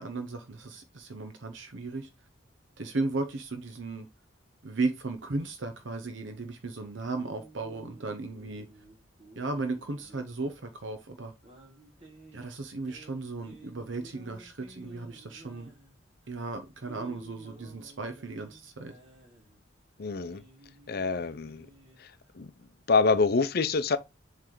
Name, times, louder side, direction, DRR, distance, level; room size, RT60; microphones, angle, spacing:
voice 1, 0.0-2.1 2.8-4.1 4.6-8.7 9.4-11.3 12.3-15.7 16.3-18.9, right 3 dB, 70° right, 0.8 m, -35 dB
sound 1, 7.2-22.7, right 1 dB, 30° right, 2.1 m, -54 dB
voice 2, 20.0-20.4 20.9-21.7 22.0-22.5 22.9-24.0, left 4 dB, 50° left, 0.6 m, -26 dB
7.6 x 3.3 x 3.8 m
head